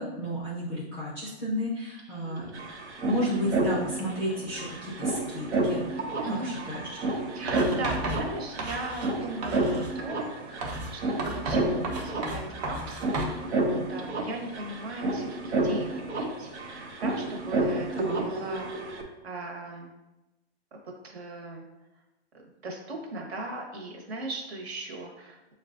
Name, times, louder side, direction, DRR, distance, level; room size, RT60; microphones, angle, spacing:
voice 1, 0.0-2.5 3.0-5.9 6.4-6.9 17.9-18.2, equal, 5° left, -8 dB, 0.4 m, -32 dB
sound 1, 2.0-2.1 2.2-19.0, right 2 dB, 85° right, 1.0 m, -31 dB
voice 2, 6.2-6.7 7.3-13.3 13.6-17.9 18.2-18.7 19.2-19.9 21.0-21.7 22.6-25.4, right 2 dB, 70° right, 1 dB, 1.2 m, -38 dB
Writing, 7.5-9.2 9.4-10.0 10.6-13.4, right 2 dB, 40° right, 0.8 m, -34 dB
7.0 x 2.4 x 2.5 m, 1.0 s
hypercardioid pair, 155°, 33 cm